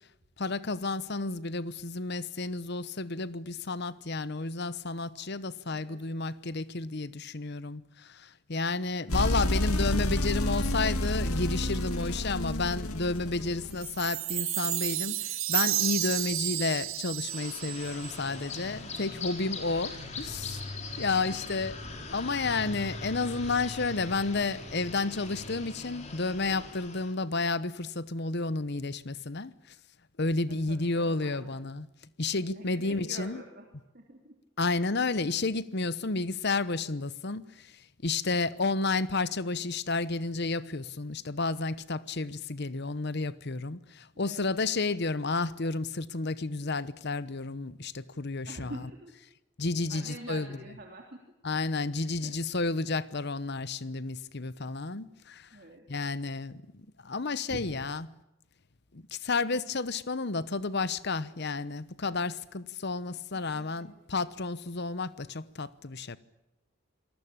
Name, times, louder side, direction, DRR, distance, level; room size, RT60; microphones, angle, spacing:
voice 1, 0.4-20.6 21.0-21.8 22.1-29.5 30.2-31.9 32.2-33.4 34.6-48.8 49.6-50.5 51.4-55.5 55.9-58.1 58.9-66.2, left 3 dB, 50° left, 1.0 m, -31 dB
sound 1, 9.1-13.9, left 1 dB, 90° left, 2.6 m, -29 dB
Chime, 13.8-18.3, right 14 dB, 75° right, 1.9 m, -31 dB
sound 2, 17.2-27.1, left 2 dB, 30° left, 4.2 m, -41 dB
voice 2, 30.7-31.6 32.5-33.6 33.9-34.3 44.1-44.5 48.5-49.1 49.9-51.0 52.0-52.3 55.5-55.8 57.5-57.6 63.5-63.9, right 1 dB, 45° right, 3.2 m, -46 dB
27.0 x 19.5 x 8.8 m
head